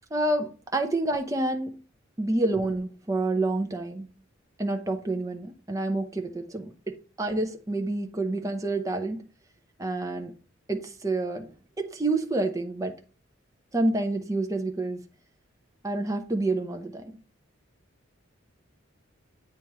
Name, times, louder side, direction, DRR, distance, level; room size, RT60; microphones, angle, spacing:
voice 1, 0.1-1.8 2.2-4.1 4.6-9.2 9.8-10.3 10.7-11.5 11.8-12.9 13.7-15.0 15.8-17.0, right 2 dB, 15° right, 0.7 m, -28 dB
8.8 x 3.0 x 4.6 m
head